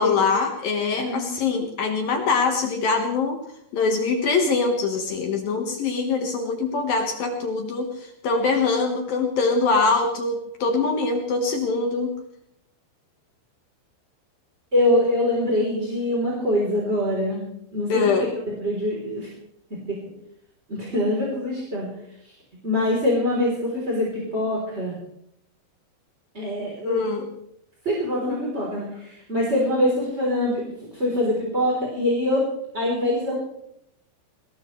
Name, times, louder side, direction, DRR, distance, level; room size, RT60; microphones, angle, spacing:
voice 1, 0.0-3.4 3.7-7.9 8.2-12.1 17.9-18.3 26.8-27.3, left 4 dB, 60° left, 3 dB, 2.6 m, -23 dB
voice 2, 1.0-1.3 14.7-17.4 17.7-18.0 18.5-19.3 19.7-20.0 20.7-21.9 22.6-25.0 26.3-27.0 27.8-32.4 32.7-33.4, left 1 dB, 15° right, -4 dB, 3.1 m, -24 dB
21.5 x 19.5 x 3.2 m, 0.75 s
omnidirectional pair, 5.7 m